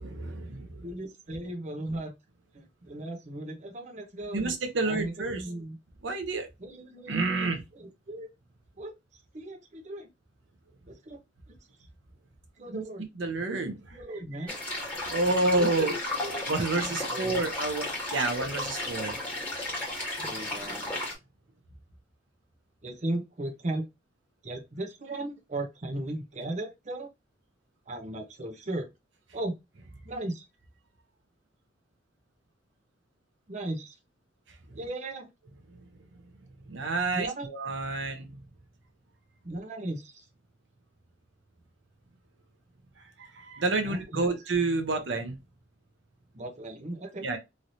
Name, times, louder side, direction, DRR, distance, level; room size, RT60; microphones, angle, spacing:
voice 1, 0.0-0.9 4.3-5.4 6.0-6.5 7.1-7.6 12.7-12.8 13.2-14.0 14.4-14.5 14.8-15.9 16.5-19.2 36.7-38.2 43.2-45.4 47.2-47.4, right 3 dB, 80° right, 0.8 m, -29 dB
voice 2, 0.8-2.1 2.5-4.5 4.8-5.8 6.6-8.3 8.8-8.9 9.3-10.1 10.9-11.2 12.6-13.1 14.0-14.5 15.5-17.4 20.2-21.0 22.8-23.8 24.4-27.1 27.9-28.9 29.3-29.5 30.0-30.4 33.5-33.9 34.7-35.3 37.1-37.5 39.4-40.2 43.8-44.4 46.3-47.3, right 1 dB, 40° right, 0.8 m, -37 dB
sound 1, 14.5-21.1, left 1 dB, 10° left, 1.5 m, -34 dB
3.1 x 2.7 x 2.7 m
head